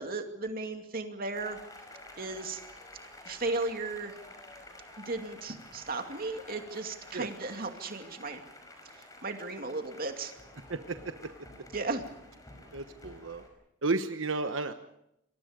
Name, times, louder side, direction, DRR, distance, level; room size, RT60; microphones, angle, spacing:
voice 1, 0.0-1.6 2.2-2.6 3.2-4.1 5.1-8.4 9.0-10.3 11.7-12.0, right 3 dB, 50° right, 5 dB, 2.5 m, -35 dB
sound 1, 1.3-13.5, left 1 dB, 20° left, 5.6 m, -51 dB
voice 2, 10.7-11.3 12.7-13.4 13.8-14.7, right 3 dB, 90° right, 8 dB, 1.1 m, -33 dB
28.0 x 23.0 x 5.2 m, 0.79 s
head